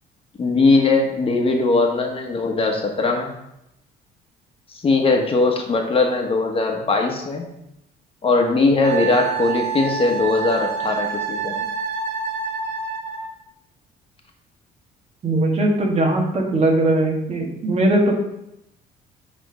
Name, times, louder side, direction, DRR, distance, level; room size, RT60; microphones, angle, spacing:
voice 1, 0.4-3.3 4.7-7.5 8.2-11.6, left 3 dB, 35° left, 2 dB, 1.2 m, -20 dB
Wind instrument woodwind instrument, 8.8-13.3, right 6 dB, 65° right, 1.6 m, -27 dB
voice 2, 15.2-18.2, right 1 dB, 40° right, 0 dB, 1.9 m, -19 dB
7.8 x 3.7 x 6.3 m, 0.84 s
cardioid pair, 110°, 17 cm